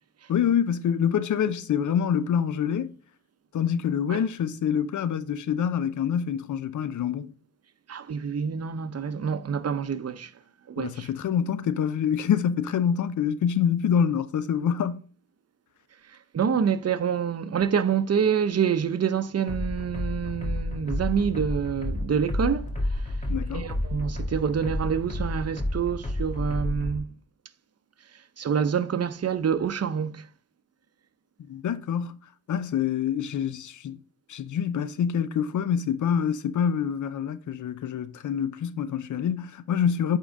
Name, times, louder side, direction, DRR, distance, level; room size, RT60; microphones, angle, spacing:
voice 1, 0.3-2.9 3.5-7.3 10.8-15.0 23.3-23.7 31.5-32.2 32.5-34.0 34.3-40.2, left 8 dB, 85° left, 0.6 m, -26 dB
voice 2, 7.9-10.3 10.7-11.1 16.3-22.7 23.5-27.1 28.4-30.2, right 7 dB, 55° right, 0.7 m, -27 dB
sound 1, 19.5-27.0, left 1 dB, 25° left, 1.7 m, -30 dB
8.4 x 3.7 x 3.6 m
cardioid pair, 45°, 29 cm